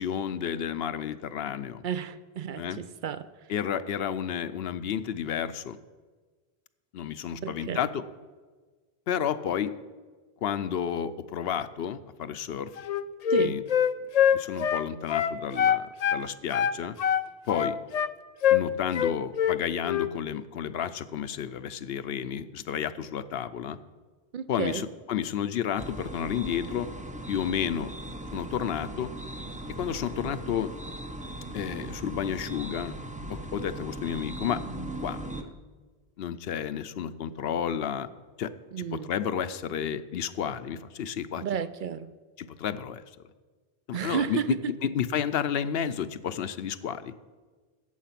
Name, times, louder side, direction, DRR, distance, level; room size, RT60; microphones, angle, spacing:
voice 1, 0.0-1.8 2.6-2.8 3.5-5.8 6.9-8.0 9.1-9.8 10.4-12.7 13.4-13.6 14.3-17.0 17.5-17.8 18.5-23.8 24.5-26.9 27.3-27.9 28.3-29.1 29.8-30.7 31.5-33.0 33.3-34.6 35.0-35.5 36.2-38.1 38.4-38.5 38.8-41.4 42.4-43.0 43.9-47.1, left 8 dB, 75° left, 12 dB, 0.8 m, -31 dB
voice 2, 1.8-3.3 7.4-7.8 13.3-13.6 24.3-24.8 38.7-39.1 41.4-42.1 43.9-44.5, right 8 dB, 60° right, 14 dB, 0.7 m, -32 dB
Wind instrument woodwind instrument, 12.8-16.2 16.5-18.1 18.4-18.7 18.9-19.6 19.9-20.1, left 9 dB, 55° left, 0.4 m, -24 dB
sound 1, 25.8-35.4, right 1 dB, 10° right, 0.6 m, -38 dB
13.5 x 8.7 x 5.8 m, 1.4 s
omnidirectional pair, 1.0 m